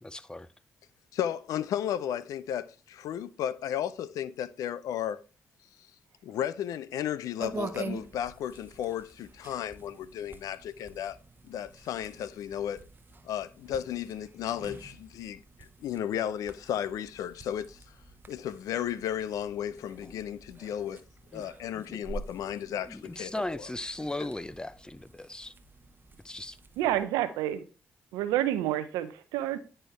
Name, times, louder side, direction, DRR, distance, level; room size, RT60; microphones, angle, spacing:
voice 1, 0.0-0.5 20.0-20.1 21.3-21.4 21.9-22.0 22.9-25.5 26.2-26.6, left 1 dB, 15° left, 0.6 m, -37 dB
voice 2, 1.1-5.2 6.2-11.2 11.4-12.8 13.2-17.8 18.3-21.0 21.3-23.7 24.2-24.3, left 10 dB, 75° left, 0.4 m, -34 dB
sound 1, 7.4-27.1, right 3 dB, 35° right, 0.9 m, -46 dB
voice 3, 26.8-27.6 28.1-29.6, right 13 dB, 85° right, 0.6 m, -29 dB
9.9 x 4.4 x 3.3 m
hypercardioid pair, 40°, 6 cm